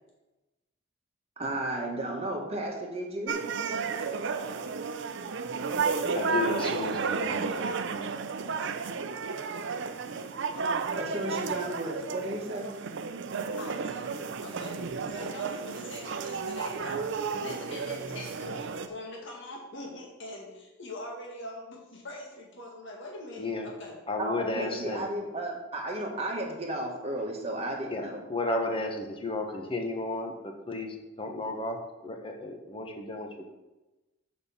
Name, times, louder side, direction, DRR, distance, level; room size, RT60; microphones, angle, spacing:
voice 1, 1.4-3.4 10.9-12.7 24.2-28.2, right 1 dB, 30° right, 0 dB, 1.6 m, -33 dB
sound 1, 3.3-18.9, right 5 dB, 60° right, 0.6 m, -32 dB
voice 2, 6.1-8.1 23.4-23.7 24.1-25.0 27.9-33.5, left 2 dB, 25° left, 3 dB, 1.1 m, -33 dB
voice 3, 13.6-14.1 14.4-24.0, left 1 dB, 65° left, -1 dB, 1.9 m, -43 dB
6.9 x 5.4 x 7.1 m, 1.1 s
head